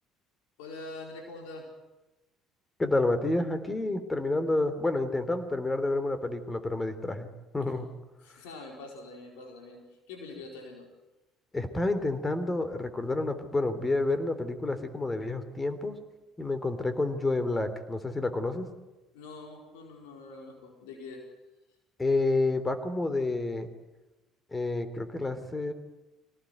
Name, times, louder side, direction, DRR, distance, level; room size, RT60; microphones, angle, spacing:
voice 1, 0.6-1.7 8.2-10.9 19.1-21.2, left 3 dB, 80° left, 2 dB, 4.6 m, -44 dB
voice 2, 2.8-7.3 7.5-7.9 11.5-16.0 16.4-18.7 22.0-23.7 24.5-25.7, left 2 dB, 20° left, 11 dB, 3.3 m, -29 dB
24.0 x 18.5 x 9.5 m, 1.1 s
hypercardioid pair, 65°, 0 cm